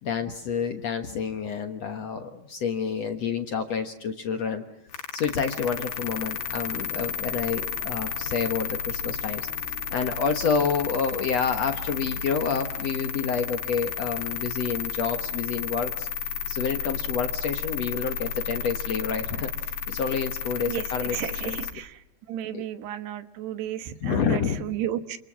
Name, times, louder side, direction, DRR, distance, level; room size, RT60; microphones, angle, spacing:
voice 1, 0.0-4.6 5.1-9.5 9.9-16.1 16.5-21.6 22.5-22.6 24.0-24.6, left 6 dB, 60° left, 6 dB, 1.8 m, -28 dB
sound 1, 4.9-21.7, left 7 dB, 75° left, 3.9 m, -32 dB
voice 2, 21.1-22.0 22.3-25.2, right 11 dB, 90° right, 10 dB, 3.5 m, -33 dB
28.5 x 28.0 x 7.5 m, 0.73 s
omnidirectional pair, 4.6 m